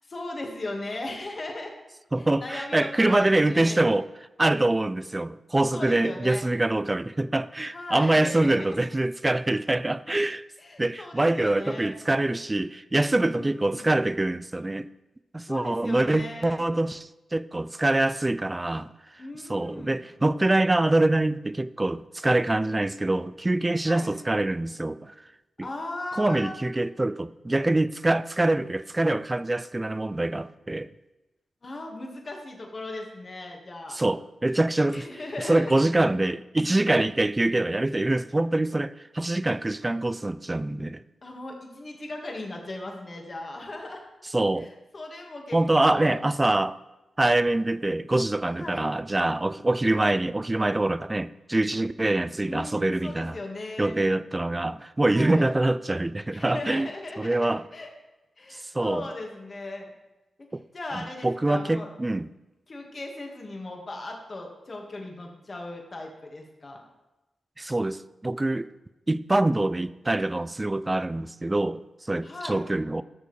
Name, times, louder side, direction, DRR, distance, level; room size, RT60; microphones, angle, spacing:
voice 1, 0.1-1.7 2.2-3.8 5.7-6.5 7.7-8.9 10.6-11.9 13.3-13.9 15.5-16.6 19.2-20.1 23.9-24.1 25.6-26.5 31.6-34.0 34.9-35.7 41.2-44.0 44.6-46.2 48.6-48.9 52.5-54.0 55.1-55.5 56.3-57.9 58.4-59.9 60.4-60.5 60.7-61.9 62.7-66.8 72.2-72.6, left 2 dB, 45° left, 1.9 m, -38 dB
voice 2, 2.1-4.1 4.4-10.4 10.8-14.9 15.3-18.9 19.5-25.1 25.6-25.7 26.2-30.9 33.9-35.1 35.4-41.0 44.3-44.7 45.5-46.8 47.2-53.4 53.8-56.9 57.2-57.7 58.5-59.1 60.5-60.6 60.9-62.3 67.6-68.7 69.1-73.0, right 2 dB, 25° right, 0.4 m, -25 dB
14.0 x 6.7 x 3.3 m
supercardioid pair, 45°, 0 cm